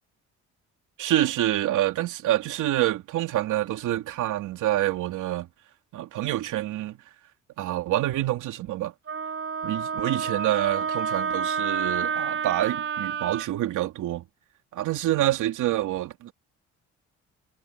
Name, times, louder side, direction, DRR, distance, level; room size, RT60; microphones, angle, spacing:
voice 1, 1.0-5.5 5.9-7.0 7.6-8.9 9.6-14.2 14.8-16.3, right 14 dB, 85° right, 3.1 m, -27 dB
Wind instrument woodwind instrument, 9.1-13.5, right 6 dB, 50° right, 2.8 m, -29 dB
cardioid pair, 90°, 30 cm